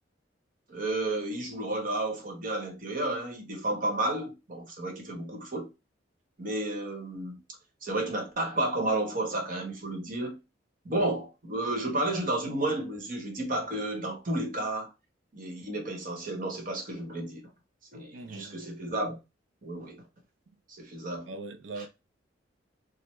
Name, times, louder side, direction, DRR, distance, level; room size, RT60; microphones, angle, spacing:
voice 1, 0.7-5.7 6.4-7.4 7.8-10.4 10.8-14.9 15.3-17.5 17.9-19.2 19.6-20.0 20.8-21.3, right 2 dB, 45° right, 1.0 m, -32 dB
voice 2, 18.1-18.6 21.2-21.9, right 3 dB, 80° right, 0.6 m, -40 dB
3.3 x 2.1 x 3.0 m
head